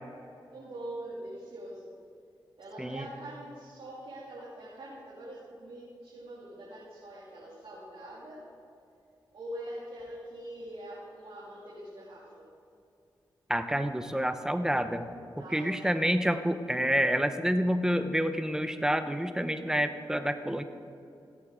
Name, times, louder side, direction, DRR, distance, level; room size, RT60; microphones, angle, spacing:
voice 1, 0.5-1.9 2.6-8.5 9.3-12.5 15.4-16.1, right 1 dB, 75° right, -7 dB, 2.4 m, -43 dB
voice 2, 13.5-15.1 15.5-20.6, equal, 5° right, 9 dB, 0.8 m, -28 dB
15.5 x 8.5 x 3.7 m, 2.7 s
cardioid pair, 55°, 9 cm